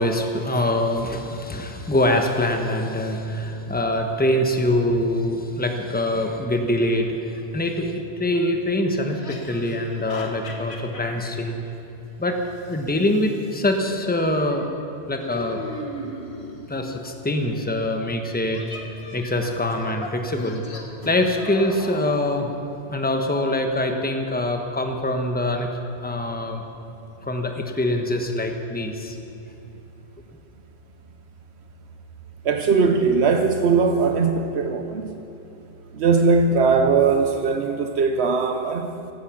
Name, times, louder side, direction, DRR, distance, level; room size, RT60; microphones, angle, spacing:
voice 1, 0.0-11.6 12.2-12.4 12.7-14.7 15.1-15.6 16.7-18.8 19.1-20.6 21.0-22.5 22.9-26.6 27.2-29.2, left 1 dB, 10° left, 1.1 m, -24 dB
sound 1, 7.8-7.9 9.1-11.3 12.6-13.7 15.2-16.7 18.5-22.1, left 2 dB, 75° left, 1.7 m, -38 dB
voice 2, 32.4-35.1 35.9-38.9, right 4 dB, 85° right, 1.1 m, -20 dB
16.0 x 13.0 x 6.2 m
omnidirectional pair, 1.1 m